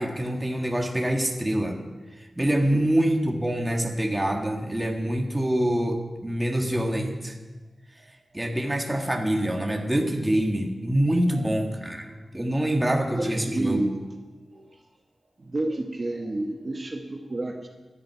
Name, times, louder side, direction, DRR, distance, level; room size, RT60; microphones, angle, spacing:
voice 1, 0.0-1.8 2.2-7.4 8.3-12.1 12.3-13.8, right 1 dB, 15° right, 2 dB, 1.7 m, -25 dB
voice 2, 12.8-14.0 14.5-14.7 15.4-17.7, right 2 dB, 40° right, 3 dB, 1.3 m, -30 dB
15.5 x 11.0 x 4.7 m, 1.2 s
wide cardioid pair, 75°, 0 cm